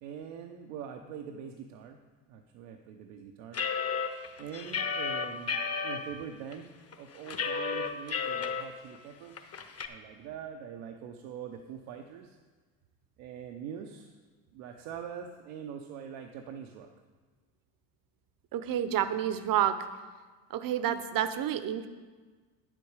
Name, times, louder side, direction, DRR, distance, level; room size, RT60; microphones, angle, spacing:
voice 1, 0.0-2.0 2.3-3.6 4.4-6.7 7.0-9.5 9.9-12.4 13.2-14.2 14.5-16.9, right 8 dB, 75° right, 4 dB, 0.9 m, -43 dB
sound 1, 3.5-6.0 6.5-6.6 6.9-8.6 9.0-9.1 9.4-9.9, left 5 dB, 35° left, 1.1 m, -32 dB
voice 2, 18.5-19.9 20.5-21.9, right 10 dB, 50° right, 12 dB, 0.9 m, -29 dB
9.5 x 7.7 x 4.8 m, 1.4 s
hypercardioid pair, 75°, 43 cm